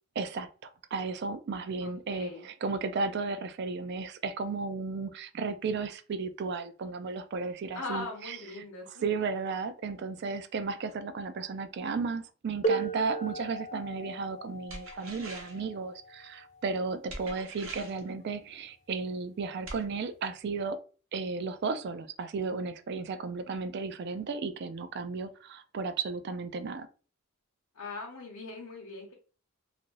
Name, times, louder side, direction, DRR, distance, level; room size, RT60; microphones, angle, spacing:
voice 1, 0.2-8.4 9.0-20.8 21.1-26.9, right 4 dB, 50° right, 0.3 m, -34 dB
voice 2, 1.8-2.4 7.7-9.3 27.7-29.1, left 3 dB, 85° left, 0.7 m, -40 dB
sound 1, 12.6-18.1 19.1-19.2 20.1-20.3, right 3 dB, 30° left, 0.4 m, -37 dB
sound 2, 14.7-15.7 17.1-18.1 19.7-19.8, right 2 dB, 65° right, 0.8 m, -43 dB
2.6 x 2.5 x 3.0 m
head